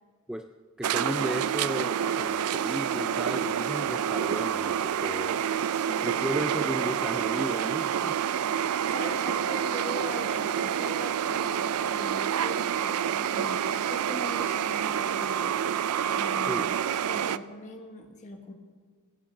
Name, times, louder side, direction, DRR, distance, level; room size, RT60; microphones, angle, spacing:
voice 1, 0.8-5.4 6.0-8.2 16.5-16.7, equal, 5° right, 7 dB, 0.4 m, -34 dB
sound 1, 0.8-17.4, right 8 dB, 85° right, 0.4 m, -28 dB
voice 2, 5.7-6.1 8.6-16.7 17.1-18.5, left 1 dB, 35° left, 2 dB, 1.4 m, -41 dB
16.5 x 10.0 x 6.4 m, 1.5 s
head